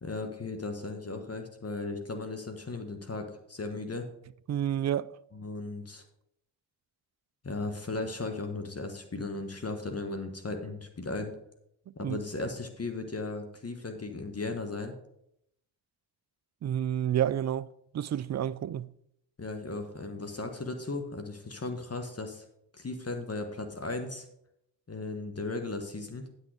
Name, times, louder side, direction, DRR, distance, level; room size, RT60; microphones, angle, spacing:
voice 1, 0.0-4.1 5.3-6.0 7.4-11.3 11.9-15.0 19.4-22.4 22.7-24.3 24.9-26.3, left 3 dB, 30° left, 1.4 m, -36 dB
voice 2, 4.5-5.2 12.0-12.2 16.6-18.9, right 10 dB, 40° right, 0.4 m, -30 dB
9.6 x 6.5 x 4.9 m
supercardioid pair, 50°, 46 cm